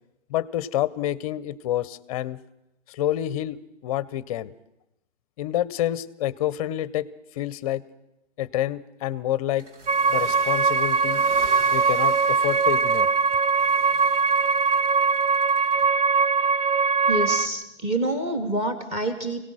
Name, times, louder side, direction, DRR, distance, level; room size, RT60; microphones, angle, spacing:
voice 1, 0.3-2.4 2.9-4.5 5.4-7.1 7.3-7.8 8.4-9.7 10.1-11.2 11.7-13.1, left 12 dB, 30° left, 19 dB, 0.7 m, -28 dB
sound 1, 9.6-15.9, right 3 dB, 90° right, 2.7 m, -44 dB
sound 2, 9.9-17.5, right 5 dB, 40° right, 0.9 m, -21 dB
voice 2, 17.1-19.4, right 1 dB, 15° right, 7 dB, 2.6 m, -27 dB
24.0 x 18.0 x 6.2 m, 0.88 s
hypercardioid pair, 150°, 35 cm